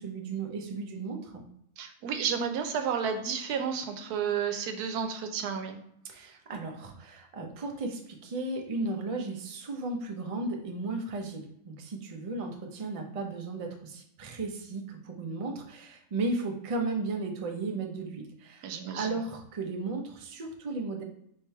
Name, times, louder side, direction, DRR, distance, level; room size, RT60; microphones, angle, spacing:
voice 1, 0.0-1.4 6.1-21.0, right 3 dB, 50° right, 3 dB, 0.4 m, -35 dB
voice 2, 1.8-5.8 6.1-6.3 18.6-19.2, right 7 dB, 90° right, 7 dB, 1.2 m, -32 dB
3.6 x 3.3 x 4.4 m, 0.72 s
omnidirectional pair, 1.6 m